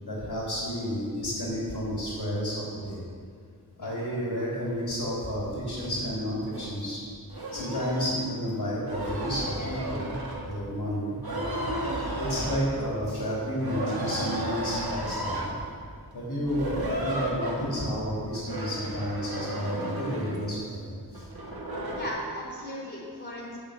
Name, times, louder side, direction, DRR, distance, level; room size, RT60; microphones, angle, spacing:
voice 1, 0.0-3.0 3.8-7.0 7.5-10.1 10.5-11.1 12.2-15.5 16.1-21.2, equal, 80° left, -6 dB, 3.0 m, -31 dB
sound 1, 4.6-4.8 5.7-5.9 6.5-6.7 7.1-8.1 8.7-10.7 11.1-13.0 13.6-15.6 16.4-18.0 18.3-20.5 21.1-22.1, right 1 dB, 70° right, 1.9 m, -33 dB
voice 2, 22.0-23.6, equal, 25° left, -5 dB, 3.4 m, -37 dB
8.8 x 8.0 x 7.2 m, 2.2 s
wide cardioid pair, 55°, 38 cm